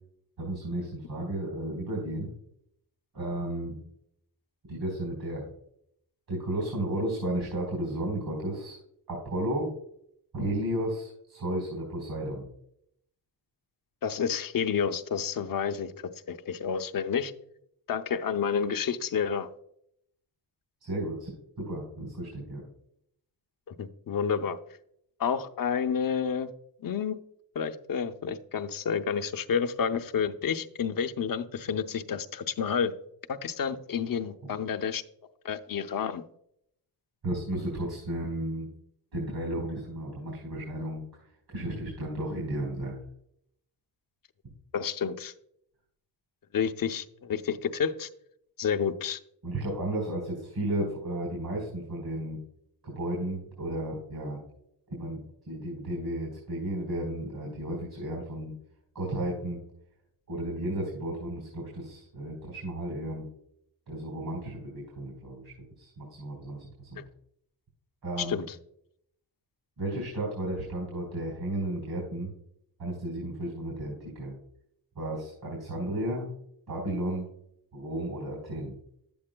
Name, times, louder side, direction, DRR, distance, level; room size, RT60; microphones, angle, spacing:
voice 1, 0.4-2.3 3.1-3.8 4.7-5.4 6.3-8.8 9.1-9.7 10.3-12.5 20.8-21.3 21.7-22.6 37.2-38.7 39.1-43.0 49.4-52.4 52.8-54.4 54.9-55.2 55.5-58.5 58.9-59.6 60.3-63.3 63.9-67.0 68.0-68.4 69.8-72.3 72.8-74.3 75.0-76.3 76.7-77.3 77.7-78.8, right 1 dB, 55° right, -2 dB, 3.9 m, -33 dB
voice 2, 14.0-15.9 16.3-17.3 17.9-19.5 23.8-24.6 25.2-26.5 26.8-27.2 27.5-32.9 33.3-35.0 35.4-36.2 44.7-45.3 46.5-48.1 48.6-49.2 67.0-67.1 68.2-68.5, left 7 dB, 50° left, 8 dB, 0.7 m, -30 dB
11.5 x 8.6 x 2.2 m, 0.72 s
wide cardioid pair, 115°, 43 cm